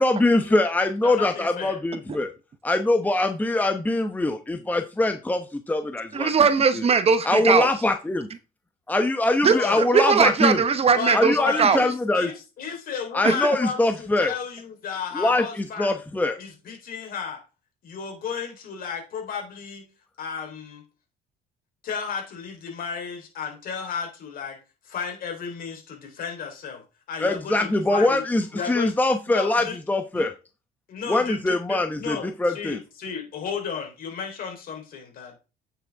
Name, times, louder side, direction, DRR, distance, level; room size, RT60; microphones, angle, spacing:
voice 1, 0.0-2.3 2.6-6.3 6.7-6.8 7.2-8.3 8.9-10.6 11.1-12.3 13.1-14.3 15.1-16.4 27.2-30.3 31.1-32.8, left 2 dB, 10° left, 0.9 m, -23 dB
voice 2, 1.0-1.8 9.5-9.8 10.9-16.0 16.4-17.4 17.8-19.9 20.2-20.8 21.8-24.6 24.8-28.2 28.5-28.9 29.3-29.8 30.1-30.3 30.9-32.3 32.5-35.3, left 6 dB, 60° left, 3.9 m, -33 dB
voice 3, 6.1-7.7 9.4-11.8 13.2-13.3, right 6 dB, 35° right, 0.9 m, -20 dB
9.1 x 6.6 x 3.5 m
cardioid pair, 110°, 17 cm